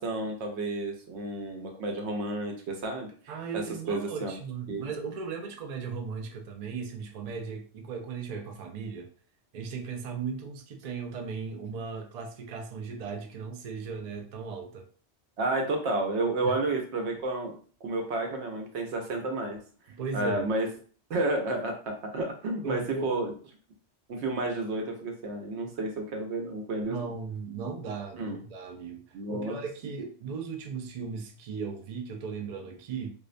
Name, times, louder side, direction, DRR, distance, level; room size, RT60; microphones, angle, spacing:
voice 1, 0.0-3.1 3.5-4.3 4.7-4.9 15.4-19.6 20.1-20.7 21.1-23.3 24.1-27.1 28.2-28.4 29.1-29.6, right 2 dB, 80° right, 2 dB, 0.9 m, -31 dB
voice 2, 3.3-9.1 9.5-14.9 16.4-16.5 19.9-20.5 22.6-23.1 26.8-33.1, right 5 dB, 60° right, 3 dB, 0.4 m, -37 dB
2.4 x 2.1 x 2.5 m, 0.42 s
omnidirectional pair, 1.2 m